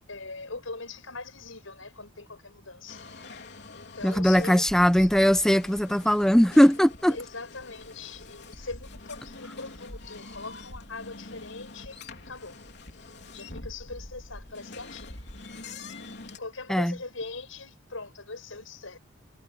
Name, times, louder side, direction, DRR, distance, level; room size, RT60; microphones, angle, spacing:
voice 1, 0.1-3.0 3.7-4.6 4.9-5.1 7.1-12.6 13.3-15.2 16.4-19.0, left 3 dB, 85° left, 5.5 m, -41 dB
sound 1, 2.9-16.4, left 2 dB, 55° left, 3.7 m, -45 dB
voice 2, 4.0-7.2 16.7-16.9, equal, 5° left, 0.6 m, -20 dB
head